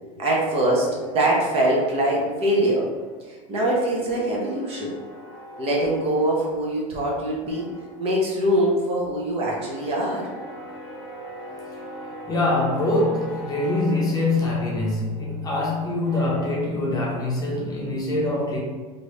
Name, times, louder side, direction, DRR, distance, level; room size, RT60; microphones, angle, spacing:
voice 1, 0.0-2.9 3.3-5.0 5.6-7.7 8.0-10.3, right 1 dB, 35° right, -3 dB, 0.9 m, -23 dB
sound 1, 0.7-3.2 3.5-7.1 7.4-16.6, equal, 5° right, 0.9 m, -42 dB
voice 2, 12.3-18.6, left 2 dB, 20° left, -4 dB, 0.8 m, -24 dB
3.0 x 2.7 x 3.1 m, 1.5 s
supercardioid pair, 125°, 18 cm